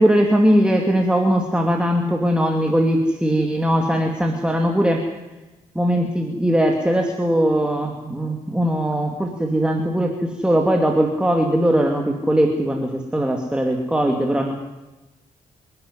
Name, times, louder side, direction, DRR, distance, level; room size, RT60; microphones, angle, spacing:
voice 1, 0.0-5.0 5.7-14.5, equal, 5° right, 2 dB, 2.5 m, -20 dB
27.0 x 12.0 x 9.8 m, 1.1 s
cardioid pair, 85°, 15 cm